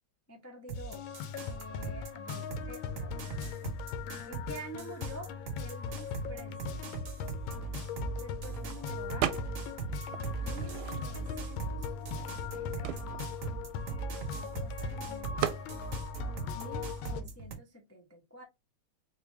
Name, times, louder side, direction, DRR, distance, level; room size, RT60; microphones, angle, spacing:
voice 1, 0.3-3.2 4.3-6.9 8.2-9.3 10.4-11.9 12.3-13.2 14.3-15.6 16.5-18.4, right 1 dB, 15° left, 0.6 m, -49 dB
sound 1, 0.7-17.2, left 6 dB, 80° left, 1.4 m, -40 dB
sound 2, 0.7-17.6, right 4 dB, 50° right, 1.2 m, -40 dB
sound 3, 9.2-9.8 10.1-11.4 12.0-12.1 12.3-14.6 15.4-15.7, right 11 dB, 90° right, 1.4 m, -36 dB
4.1 x 2.8 x 3.3 m
omnidirectional pair, 2.2 m